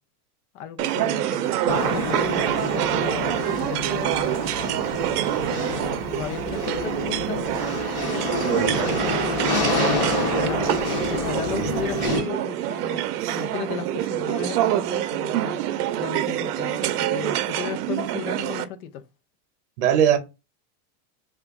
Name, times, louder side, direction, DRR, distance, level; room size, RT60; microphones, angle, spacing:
voice 1, 0.5-4.2 5.5-7.7 9.8-10.6 11.1-15.6 16.0-19.1, left 9 dB, 70° left, 0.6 m, -35 dB
sound 1, 0.8-18.6, right 12 dB, 90° right, 0.5 m, -26 dB
sound 2, 1.7-12.2, left 3 dB, 25° left, 0.5 m, -28 dB
voice 2, 8.4-9.1 11.5-11.7 12.0-12.2 13.2-13.4 19.8-20.2, right 9 dB, 50° right, 0.7 m, -23 dB
2.9 x 2.4 x 3.5 m
supercardioid pair, 180°, 45 cm